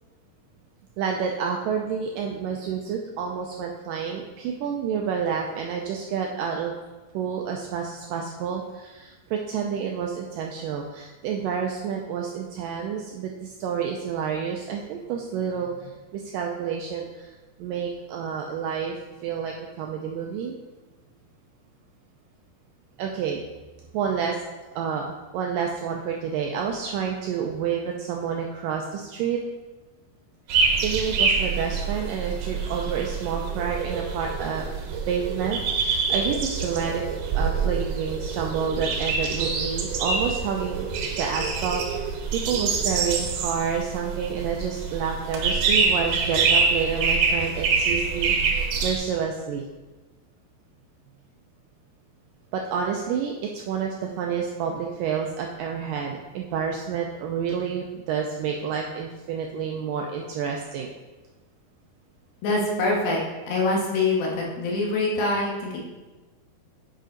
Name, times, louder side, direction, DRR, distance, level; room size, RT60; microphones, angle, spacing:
voice 1, 1.0-6.7 7.1-17.3 17.6-19.0 19.2-20.6 23.0-23.4 23.9-24.4 24.8-29.4 30.8-34.7 35.1-37.0 37.3-40.9 41.2-41.8 42.3-49.6 52.5-60.9, right 7 dB, 85° right, 1 dB, 1.9 m, -29 dB
sound 1, 30.5-49.0, right 5 dB, 70° right, 2.2 m, -26 dB
voice 2, 62.4-63.2 63.5-65.8, left 2 dB, 70° left, -2 dB, 3.2 m, -24 dB
9.1 x 5.2 x 3.8 m, 1.2 s
omnidirectional pair, 4.5 m